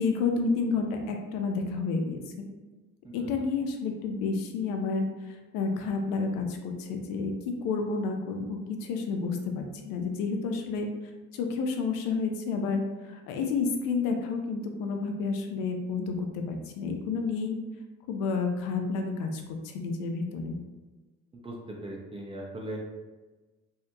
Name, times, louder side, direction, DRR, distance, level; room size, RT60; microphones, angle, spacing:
voice 1, 0.0-2.2 3.1-10.9 11.3-17.6 18.1-20.6, left 4 dB, 60° left, 4 dB, 0.5 m, -30 dB
voice 2, 21.4-22.8, right 1 dB, 15° right, -2 dB, 0.3 m, -39 dB
2.8 x 2.1 x 2.3 m, 1.2 s
figure-of-eight pair, 40°, 39 cm